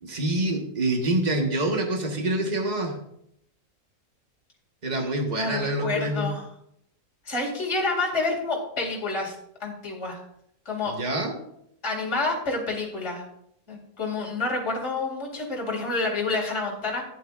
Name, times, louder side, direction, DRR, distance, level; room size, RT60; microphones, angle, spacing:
voice 1, 0.0-3.0 4.8-6.3 10.9-11.4, right 1 dB, 30° right, 2 dB, 1.4 m, -26 dB
voice 2, 5.4-6.4 7.3-9.3 9.6-10.2 10.7-10.9 11.8-13.2 13.7-17.0, left 3 dB, 55° left, -2 dB, 2.6 m, -28 dB
11.5 x 9.6 x 2.5 m, 0.73 s
omnidirectional pair, 1.5 m